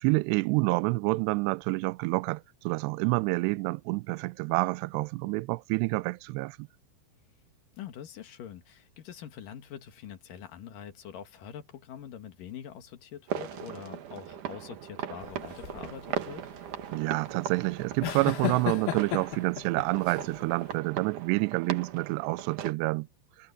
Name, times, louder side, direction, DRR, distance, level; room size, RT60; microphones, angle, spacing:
voice 1, 0.0-6.7 16.9-23.1, right 24 dB, 85° right, 2.6 m, -28 dB
voice 2, 7.8-16.4, left 9 dB, 60° left, 3.0 m, -44 dB
sound 1, 13.3-22.7, right 10 dB, 60° right, 2.4 m, -38 dB
sound 2, 15.2-20.7, left 16 dB, 80° left, 2.2 m, -36 dB
omnidirectional pair, 5.1 m